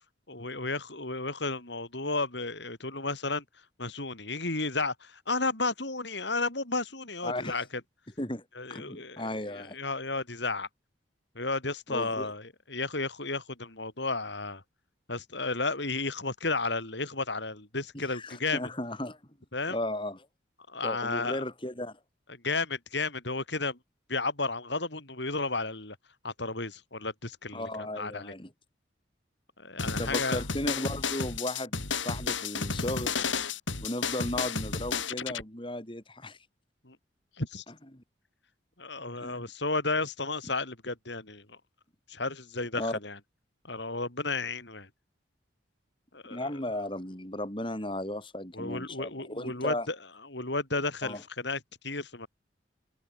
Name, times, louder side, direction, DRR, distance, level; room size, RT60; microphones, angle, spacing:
voice 1, 0.3-3.4 3.8-7.6 8.6-10.7 11.3-14.6 15.1-18.6 19.5-19.8 20.7-21.4 22.3-23.8 24.1-26.0 26.2-28.3 29.6-30.4 36.8-37.0 37.4-37.6 38.8-41.6 42.1-43.2 43.6-44.9 46.1-46.5 48.5-50.0 50.2-52.3, left 3 dB, 65° left, 4.4 m, -33 dB
voice 2, 7.2-7.6 8.2-8.4 8.7-9.8 11.9-12.3 17.9-19.2 19.7-20.2 20.8-22.0 27.5-28.5 29.8-33.1 33.8-36.4 37.9-38.0 39.2-39.5 42.7-43.0 46.3-49.9 51.0-51.2, left 1 dB, 25° left, 3.2 m, -35 dB
sound 1, 29.8-35.4, left 5 dB, 85° left, 4.5 m, -32 dB
open air
head